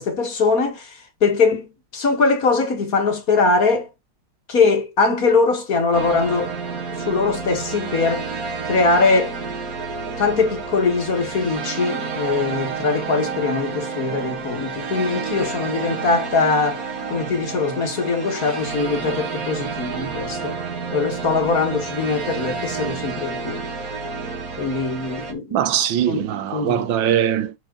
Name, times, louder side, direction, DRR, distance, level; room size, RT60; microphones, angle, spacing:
voice 1, 0.0-3.9 4.5-6.5 7.0-8.3 8.6-9.3 10.2-20.6 20.9-23.6 24.6-25.6 26.1-26.9, left 4 dB, 50° left, 2.1 m, -21 dB
sound 1, 5.9-25.3, right 5 dB, 50° right, 1.8 m, -30 dB
voice 2, 25.5-27.5, right 10 dB, 90° right, 1.5 m, -21 dB
6.6 x 4.3 x 3.8 m
omnidirectional pair, 2.0 m